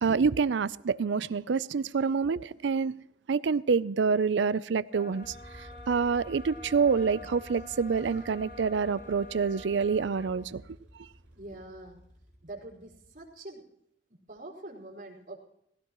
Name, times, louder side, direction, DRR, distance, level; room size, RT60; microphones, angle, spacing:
voice 1, 0.0-2.9 3.3-10.6, right 5 dB, 85° right, 0.5 m, -27 dB
sound 1, 4.9-10.4, left 3 dB, 55° left, 5.7 m, -48 dB
sound 2, 5.2-13.3, equal, 5° right, 7.0 m, -52 dB
voice 2, 11.3-12.0 12.4-13.6 14.1-15.4, right 2 dB, 50° right, 4.5 m, -45 dB
18.5 x 17.0 x 3.0 m
head